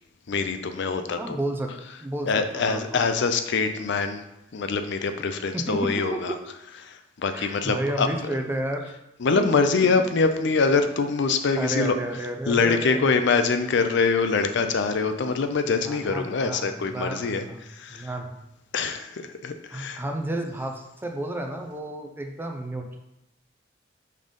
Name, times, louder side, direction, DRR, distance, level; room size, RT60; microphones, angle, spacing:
voice 1, 0.3-1.4 2.3-4.2 4.5-6.4 6.8-8.3 9.2-11.9 12.5-18.1 18.7-20.0, left 4 dB, 60° left, 8 dB, 0.5 m, -24 dB
voice 2, 1.2-1.7 2.0-2.8 5.5-6.2 7.3-8.9 9.4-9.5 11.6-13.2 15.7-17.6 17.9-18.4 19.7-23.0, right 1 dB, 10° right, 3 dB, 0.6 m, -31 dB
5.3 x 3.9 x 5.2 m, 0.90 s
head